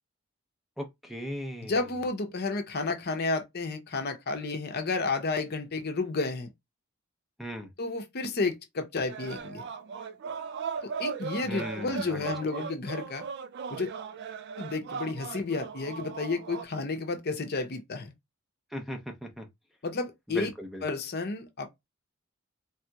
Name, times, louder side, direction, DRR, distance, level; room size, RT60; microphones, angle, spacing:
voice 1, 0.8-1.8 7.4-7.7 11.4-12.7 18.7-19.5 20.3-20.8, equal, ahead, 0.5 m, -38 dB
voice 2, 1.6-6.5 7.8-9.6 10.8-13.2 13.7-13.9 14.6-18.1 19.8-20.5 20.8-21.7, left 3 dB, 50° left, 0.7 m, -31 dB
sound 1, 9.1-16.6, right 6 dB, 55° right, 0.3 m, -38 dB
3.4 x 2.8 x 2.2 m
head